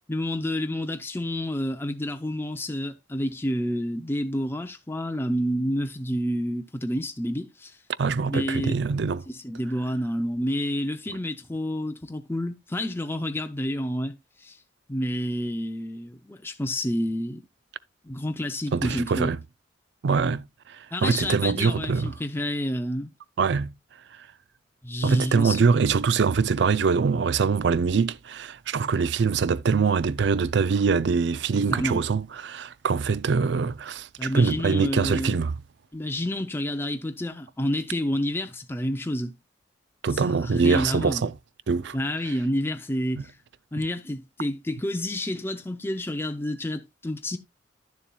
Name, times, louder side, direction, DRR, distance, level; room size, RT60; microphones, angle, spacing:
voice 1, 0.1-7.8 8.3-8.8 9.3-14.6 14.9-17.4 18.0-19.3 20.9-23.1 24.8-25.7 31.7-32.1 34.2-35.4 35.9-39.3 40.1-41.3 41.9-43.3 43.7-47.4, left 1 dB, 10° left, 0.5 m, -29 dB
voice 2, 8.0-9.2 18.7-19.4 20.0-22.1 23.4-23.7 25.0-35.5 40.0-41.3 41.7-42.0, right 5 dB, 60° right, 0.4 m, -23 dB
10.5 x 7.1 x 2.3 m
head